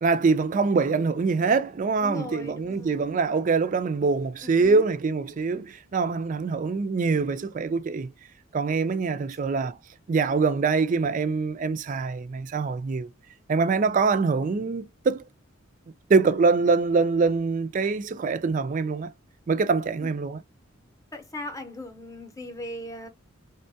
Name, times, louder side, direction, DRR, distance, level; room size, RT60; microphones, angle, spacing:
voice 1, 0.0-8.1 8.5-9.8 10.1-13.1 13.5-15.2 16.1-19.1 19.5-20.4, right 4 dB, 40° right, 0.3 m, -24 dB
voice 2, 2.0-3.2 4.4-4.9 13.7-13.8 20.0-20.2 21.1-23.1, left 1 dB, 15° left, 0.7 m, -39 dB
3.5 x 2.2 x 2.6 m
head